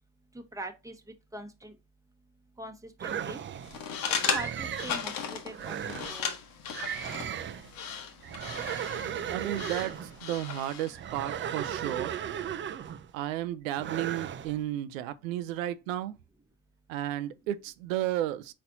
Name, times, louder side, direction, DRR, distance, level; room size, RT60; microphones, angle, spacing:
voice 1, 0.3-0.9 1.3-1.7 2.6-3.4 4.1-6.4, right 1 dB, 10° right, 1.0 m, -42 dB
sound 1, 3.0-3.8 4.3-5.0 5.5-6.2 6.7-7.7 8.2-10.2 10.9-13.1 13.8-14.6, right 9 dB, 30° right, 0.5 m, -36 dB
sound 2, 3.6-11.0, left 7 dB, 60° left, 1.2 m, -36 dB
voice 2, 9.0-12.1 13.1-16.1 16.9-18.5, right 13 dB, 90° right, 0.5 m, -33 dB
4.2 x 4.2 x 2.6 m
hypercardioid pair, 70°, 38 cm